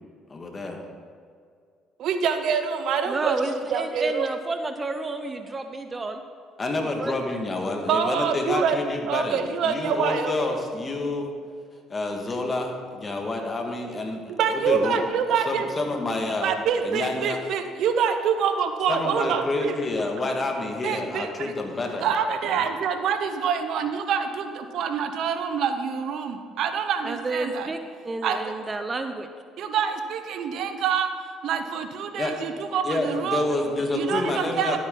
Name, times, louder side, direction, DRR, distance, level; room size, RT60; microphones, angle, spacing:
voice 1, 0.3-0.8 6.6-11.3 11.9-15.0 15.4-16.5 16.8-17.4 18.9-22.1 32.2-32.3 32.8-34.8, left 2 dB, 30° left, 2 dB, 1.7 m, -28 dB
voice 2, 2.0-4.3 7.9-10.6 14.4-15.7 16.4-19.7 20.8-21.5 22.0-27.7 28.2-28.5 29.6-31.1 31.4-33.5 33.9-34.8, right 7 dB, 70° right, 8 dB, 0.8 m, -26 dB
voice 3, 3.0-6.2 6.8-7.1 27.0-29.3, right 2 dB, 25° right, 7 dB, 0.7 m, -30 dB
11.5 x 8.6 x 3.8 m, 2.2 s
supercardioid pair, 80°, 0 cm